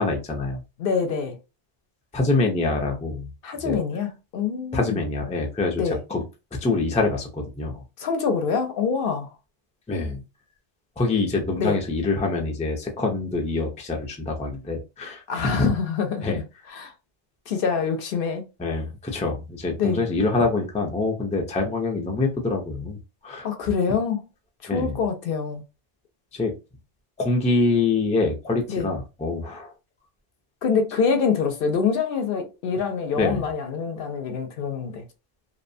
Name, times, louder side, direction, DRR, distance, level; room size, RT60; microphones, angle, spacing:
voice 1, 0.0-0.6 2.1-3.3 3.6-3.8 4.7-6.2 6.6-7.8 9.9-10.2 11.0-15.7 16.2-16.4 18.6-23.0 23.2-23.5 24.7-24.9 26.3-26.5 27.2-29.7 33.2-33.4, left 3 dB, 10° left, 0.3 m, -25 dB
voice 2, 0.8-1.4 3.4-5.0 5.8-6.0 8.0-9.3 11.6-11.8 15.3-16.9 17.5-18.4 19.8-20.1 23.4-24.3 24.6-25.6 28.7-28.9 30.6-35.0, left 5 dB, 65° left, 0.7 m, -25 dB
2.6 x 2.1 x 2.6 m
omnidirectional pair, 1.1 m